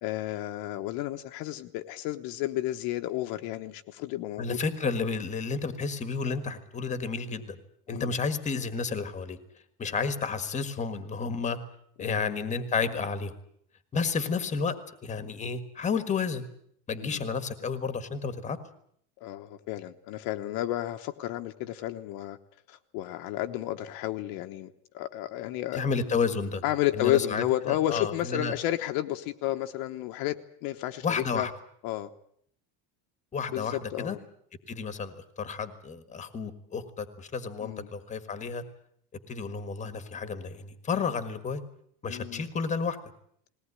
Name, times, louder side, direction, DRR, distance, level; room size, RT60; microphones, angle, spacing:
voice 1, 0.0-4.6 7.9-8.2 12.0-12.2 17.0-17.3 19.2-22.4 22.7-25.8 26.6-30.4 30.6-31.5 31.8-32.1 33.5-34.3 37.6-37.9 42.1-42.5, left 14 dB, 50° left, 6 dB, 1.2 m, -32 dB
voice 2, 4.4-7.6 7.9-9.4 9.8-11.6 12.0-13.3 13.9-14.7 15.0-16.4 16.9-18.6 25.7-26.6 26.9-28.5 31.0-31.5 33.3-34.2 34.7-38.6 39.3-41.6 42.0-43.0, left 5 dB, 15° left, 11 dB, 1.6 m, -31 dB
20.5 x 18.0 x 9.8 m, 0.67 s
cardioid pair, 175°, 44 cm